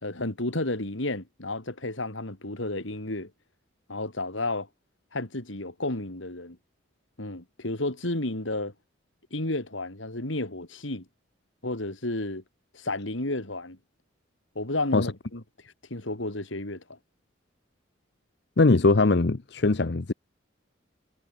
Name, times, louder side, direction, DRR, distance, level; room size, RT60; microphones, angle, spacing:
voice 1, 0.0-3.3 3.9-4.7 5.1-6.6 7.2-8.7 9.3-11.0 11.6-12.4 12.7-13.8 14.5-15.4 15.9-17.0, left 2 dB, 80° left, 3.4 m, -32 dB
voice 2, 18.6-20.1, left 3 dB, 60° left, 0.7 m, -21 dB
head